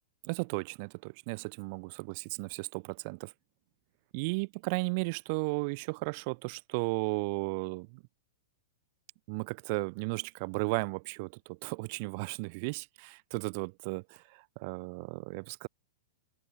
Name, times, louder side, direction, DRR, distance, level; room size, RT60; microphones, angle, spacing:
voice 1, 0.2-3.3 4.1-8.0 9.3-15.7, right 30 dB, 45° right, 2.0 m, -35 dB
figure-of-eight pair, 105°, 0 cm